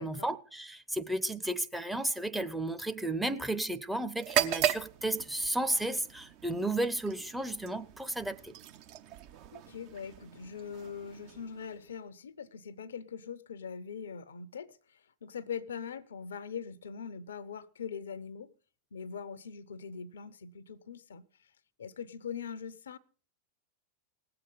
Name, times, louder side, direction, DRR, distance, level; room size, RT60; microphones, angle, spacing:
voice 1, 0.0-8.5, right 1 dB, 5° right, 0.8 m, -33 dB
sound 1, 4.2-12.0, right 10 dB, 45° right, 0.9 m, -37 dB
voice 2, 9.5-18.5 18.9-21.2 21.8-23.0, left 6 dB, 65° left, 0.6 m, -42 dB
18.5 x 7.8 x 5.4 m
figure-of-eight pair, 90°, 0 cm